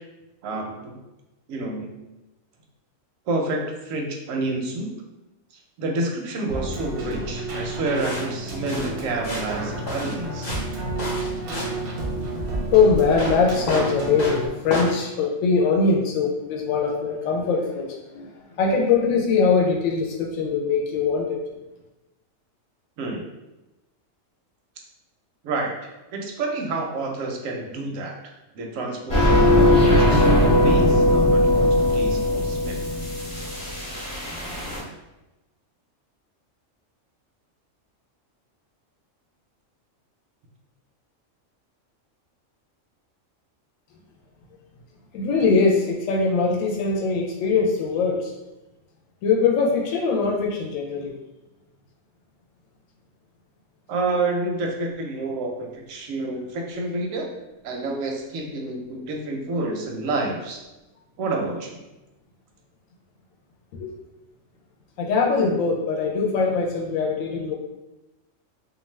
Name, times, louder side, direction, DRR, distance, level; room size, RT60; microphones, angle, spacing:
voice 1, 0.4-0.9 1.5-2.0 3.3-4.9 5.8-10.6 23.0-23.2 25.4-25.7 26.1-28.1 28.5-30.3 30.6-32.8 53.9-57.3 57.6-60.6 61.2-61.8, right 2 dB, 85° right, 1 dB, 1.0 m, -29 dB
Keyboard (musical), 6.5-14.5, right 2 dB, 60° right, 0.7 m, -30 dB
sound 1, 7.9-15.0, left 1 dB, 60° left, 0.4 m, -32 dB
voice 2, 12.7-21.4 45.1-48.3 49.2-51.2 63.7-63.9 65.0-67.5, left 4 dB, 85° left, -1 dB, 1.0 m, -22 dB
sound 2, 29.1-34.8, left 1 dB, 35° left, 0.8 m, -19 dB
2.5 x 2.4 x 3.1 m, 1.0 s
omnidirectional pair, 1.3 m